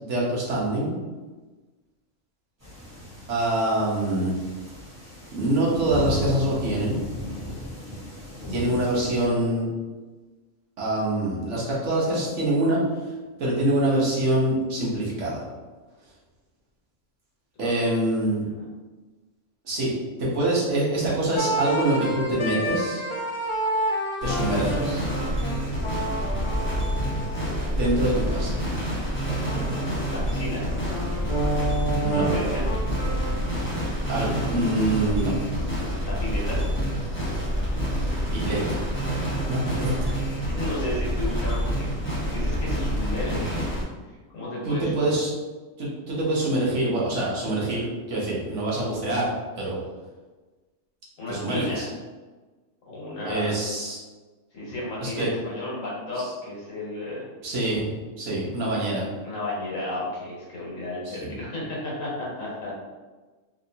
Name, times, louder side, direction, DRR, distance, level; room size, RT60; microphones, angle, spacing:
voice 1, 0.0-0.9 3.3-4.4 5.3-7.0 8.5-9.7 10.8-12.8 13.4-15.4 17.6-18.4 19.6-19.9 20.2-23.1 24.2-25.1 27.7-28.6 32.0-32.3 34.1-35.3 38.3-38.9 39.5-40.1 44.6-45.3 45.8-49.3 49.6-49.8 51.3-51.9 53.2-54.0 55.0-55.3 57.4-57.9 58.2-59.1 61.0-61.3, right 1 dB, 65° right, -5 dB, 1.3 m, -25 dB
sound 1, 2.6-9.3, left 1 dB, 15° right, 1.1 m, -36 dB
sound 2, 21.3-28.7 29.4-33.9, right 1 dB, 50° left, 0.3 m, -30 dB
sound 3, 24.2-43.8, equal, 10° left, 0.7 m, -27 dB
voice 2, 30.1-30.7 32.1-32.6 36.0-36.6 40.4-43.8 44.3-45.1 51.2-51.9 52.9-53.5 54.5-57.3 59.2-62.8, left 1 dB, 85° left, -6 dB, 1.6 m, -33 dB
3.3 x 2.8 x 2.7 m, 1.3 s
omnidirectional pair, 1.3 m